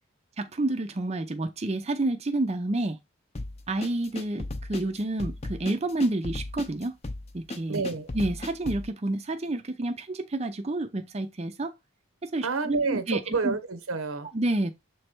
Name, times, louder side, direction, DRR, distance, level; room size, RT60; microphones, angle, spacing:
voice 1, 0.4-3.0 3.7-6.9 7.3-7.8 8.1-11.8 12.2-13.5 14.3-14.7, right 2 dB, 30° right, 0.5 m, -29 dB
sound 1, 3.3-8.9, left 2 dB, 30° left, 0.6 m, -36 dB
voice 2, 7.7-8.1 12.4-14.3, right 4 dB, 85° right, 1.0 m, -29 dB
7.0 x 3.3 x 4.4 m
head